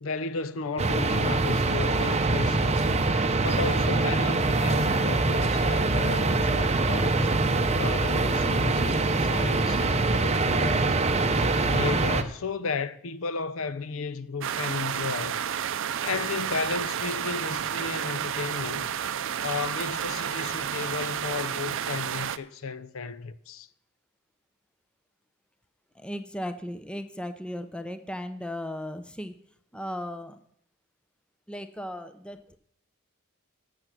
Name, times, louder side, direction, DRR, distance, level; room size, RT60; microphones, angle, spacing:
voice 1, 0.0-2.9 3.4-7.3 7.7-11.1 11.6-15.4 16.0-18.9 19.4-23.7, left 4 dB, 70° left, 0.6 m, -34 dB
sound 1, 0.8-12.2, right 3 dB, 30° right, 0.8 m, -24 dB
sound 2, 14.4-22.4, right 9 dB, 65° right, 0.5 m, -31 dB
voice 2, 26.0-29.3 29.7-30.4 31.5-32.6, equal, 5° left, 0.7 m, -36 dB
13.5 x 7.2 x 6.1 m
head